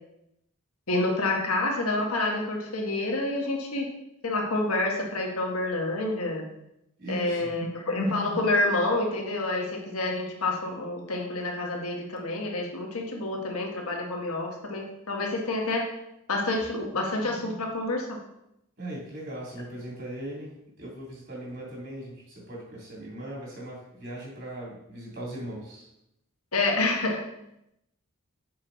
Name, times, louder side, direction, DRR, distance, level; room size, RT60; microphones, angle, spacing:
voice 1, 0.9-3.8 4.2-6.4 7.1-15.9 16.3-18.2 26.5-27.2, left 2 dB, 90° left, 0 dB, 1.5 m, -28 dB
voice 2, 7.0-7.5 18.8-25.9, right 1 dB, 55° right, -4 dB, 2.7 m, -39 dB
7.0 x 4.6 x 4.0 m, 0.82 s
head